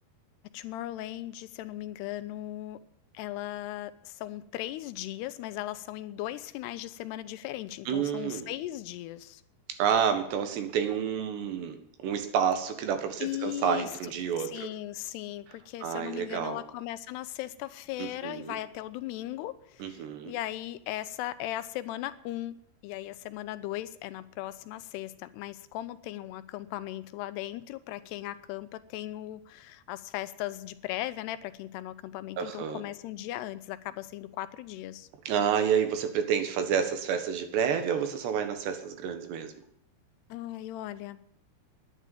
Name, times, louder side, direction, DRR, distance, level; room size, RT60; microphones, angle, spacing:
voice 1, 0.5-2.8 3.1-9.4 13.2-13.9 14.4-22.6 22.8-35.1 40.3-41.2, left 14 dB, 85° left, 13 dB, 2.8 m, -38 dB
voice 2, 7.9-8.5 9.7-11.8 12.0-14.7 15.8-16.6 18.0-18.6 19.8-20.3 32.4-32.8 35.3-39.5, right 8 dB, 90° right, 7 dB, 3.7 m, -29 dB
10.5 x 10.0 x 9.2 m, 0.70 s
omnidirectional pair, 4.7 m